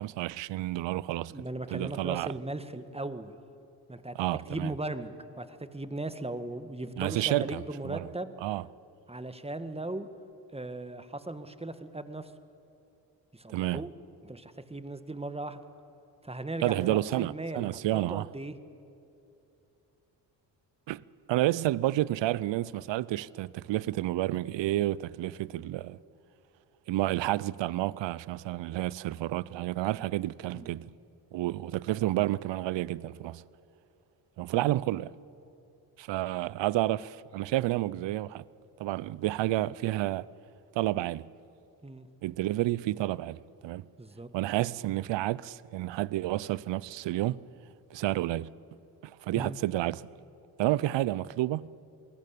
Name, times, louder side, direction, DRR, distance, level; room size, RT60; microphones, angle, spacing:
voice 1, 0.0-1.4 1.7-2.3 4.1-4.7 7.0-8.1 8.4-8.7 13.5-13.8 16.6-18.3 20.9-21.0 21.3-26.0 26.9-30.9 31.3-33.4 34.4-35.1 36.0-38.4 38.8-40.3 40.7-41.3 42.2-43.9 44.3-47.4 47.9-48.5 49.0-50.1 50.6-51.7, right 15 dB, 65° right, 0.7 m, -30 dB
voice 2, 1.3-3.3 3.9-8.3 9.1-10.1 10.5-12.3 13.3-13.9 14.2-15.6 16.2-17.8 18.1-18.6 30.5-30.7 41.8-42.1 44.0-44.3 49.3-49.6, right 2 dB, 10° right, 1.8 m, -38 dB
27.5 x 19.0 x 8.5 m
supercardioid pair, 45°, 48 cm